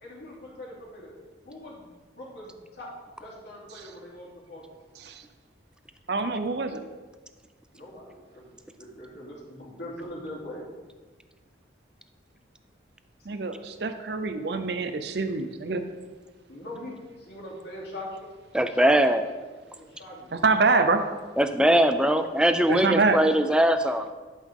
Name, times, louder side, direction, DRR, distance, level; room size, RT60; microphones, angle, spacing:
voice 1, 0.0-1.1 1.4-2.9 3.2-4.6 7.7-8.5 8.8-10.6 16.5-18.3 18.7-18.9 19.7-20.6, left 1 dB, 60° left, -6 dB, 2.8 m, -42 dB
voice 2, 6.1-6.8 13.3-15.8 20.4-21.0 22.7-23.2, right 3 dB, 60° right, 8 dB, 0.6 m, -25 dB
voice 3, 18.5-19.2 21.4-24.1, right 1 dB, 5° right, 8 dB, 0.3 m, -21 dB
11.5 x 5.6 x 3.7 m, 1.3 s
head